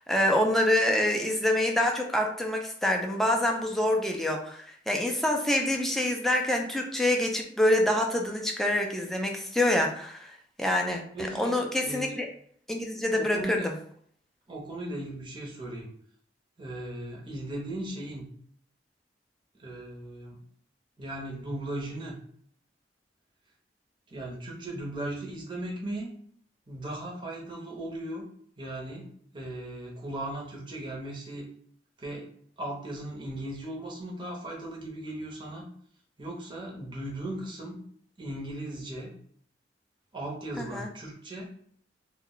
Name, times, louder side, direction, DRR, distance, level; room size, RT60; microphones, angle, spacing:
voice 1, 0.1-11.0 11.3-12.3 12.7-13.7 40.6-40.9, left 1 dB, ahead, 1 dB, 0.3 m, -26 dB
voice 2, 11.1-12.2 13.1-13.7 14.5-15.9 16.6-18.2 19.6-20.4 21.0-22.2 24.1-26.1 26.7-28.2 28.6-31.5 32.0-32.3 32.6-35.7 36.2-37.8 38.2-39.1 40.1-41.5, right 1 dB, 25° right, -3 dB, 0.7 m, -37 dB
2.2 x 2.1 x 3.7 m, 0.62 s
head